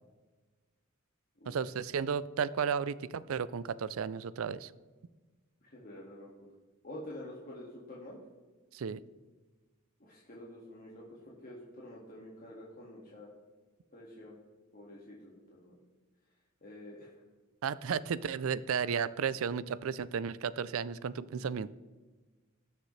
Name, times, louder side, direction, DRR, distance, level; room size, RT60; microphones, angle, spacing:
voice 1, 1.5-4.7 8.7-9.0 17.6-21.7, right 6 dB, 75° right, 18 dB, 0.4 m, -33 dB
voice 2, 5.6-6.3 6.8-8.2 10.0-13.3 13.9-14.4 14.7-15.8 16.6-17.1, left 1 dB, 45° left, -5 dB, 2.0 m, -48 dB
20.0 x 6.6 x 3.2 m, 1.3 s
head